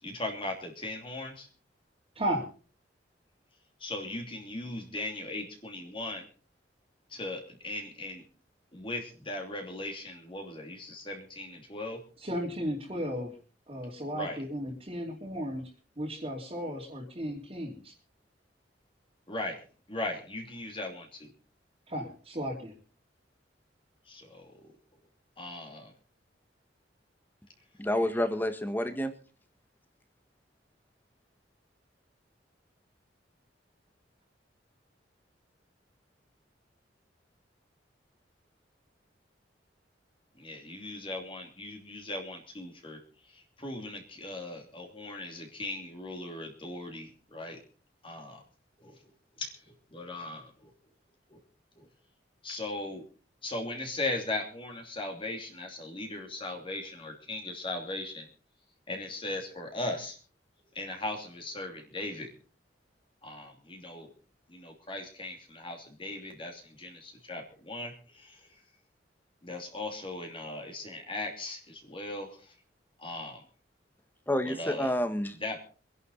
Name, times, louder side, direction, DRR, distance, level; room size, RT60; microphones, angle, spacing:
voice 1, 0.0-1.5 3.8-6.3 7.1-8.2 8.7-12.0 14.1-14.4 19.3-19.6 19.9-21.3 24.1-24.7 25.4-25.9 40.3-47.6 48.0-48.4 48.8-49.1 49.4-50.7 51.3-51.4 51.8-51.9 52.4-53.0 53.4-58.3 58.9-60.2 60.7-62.3 63.2-64.1 64.5-68.6 69.4-72.5 73.0-73.4 74.4-74.9 75.4-75.6, left 2 dB, 30° left, 3 dB, 2.9 m, -38 dB
voice 2, 2.1-2.5 12.2-13.3 13.7-15.6 16.0-17.9 21.9-22.7, equal, 35° right, -4 dB, 2.9 m, -34 dB
voice 3, 27.8-29.1 74.3-75.3, left 1 dB, 10° left, 9 dB, 1.6 m, -29 dB
24.5 x 11.0 x 4.1 m, 0.39 s
head